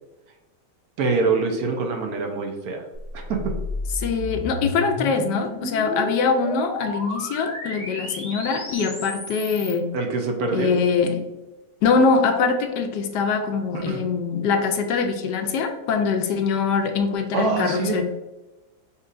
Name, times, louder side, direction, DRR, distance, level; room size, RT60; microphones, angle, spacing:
voice 1, 1.0-2.8 3.1-3.5 9.9-10.7 13.7-14.1 17.3-18.0, right 4 dB, 65° right, 3 dB, 1.0 m, -25 dB
sound 1, 2.9-9.8, left 1 dB, 5° right, 0.6 m, -32 dB
voice 2, 4.0-9.9 10.5-11.2 11.8-18.0, left 5 dB, 75° left, 5 dB, 1.1 m, -23 dB
5.6 x 3.0 x 2.5 m, 1.1 s
omnidirectional pair, 2.0 m